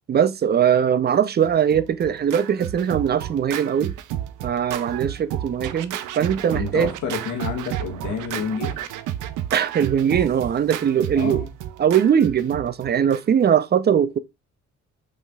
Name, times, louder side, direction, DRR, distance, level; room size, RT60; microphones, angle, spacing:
voice 1, 0.1-3.9 4.4-6.9 9.5-11.4 11.8-14.2, right 8 dB, 35° right, 0.5 m, -20 dB
Scratching (performance technique), 1.4-13.5, right 11 dB, 85° right, 0.5 m, -31 dB
voice 2, 6.6-8.8 11.1-11.5, left 5 dB, 80° left, 1.5 m, -29 dB
5.5 x 3.2 x 2.3 m
cardioid pair, 90°, 30 cm